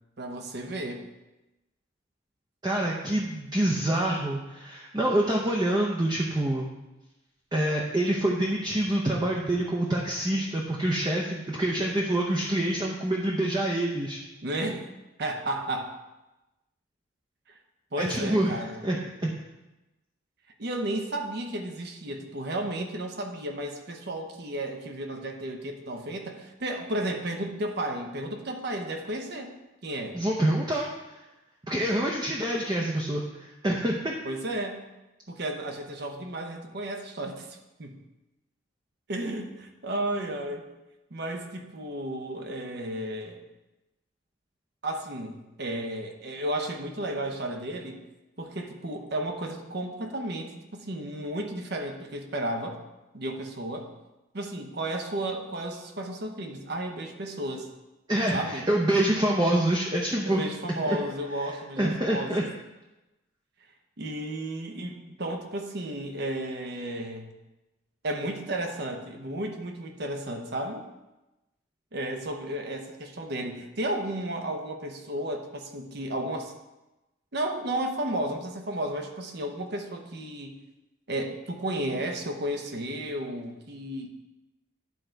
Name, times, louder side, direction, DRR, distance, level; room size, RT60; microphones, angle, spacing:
voice 1, 0.2-1.0 14.4-14.9 15.2-15.9 17.9-18.8 20.6-29.6 29.8-30.2 34.2-34.9 35.3-38.0 39.1-40.7 41.1-43.4 44.8-48.0 48.4-52.8 53.1-53.9 54.3-57.7 58.3-58.7 60.2-62.5 64.0-67.3 68.0-70.9 71.9-76.5 77.3-80.6 81.1-84.1, right 1 dB, 55° right, 4 dB, 0.8 m, -33 dB
voice 2, 2.6-6.7 7.5-14.2 18.0-19.3 30.1-31.2 31.7-34.1 58.1-60.4 60.9-61.0 61.8-62.4, right 1 dB, 20° right, -2 dB, 0.6 m, -26 dB
11.0 x 3.9 x 4.5 m, 1.0 s
head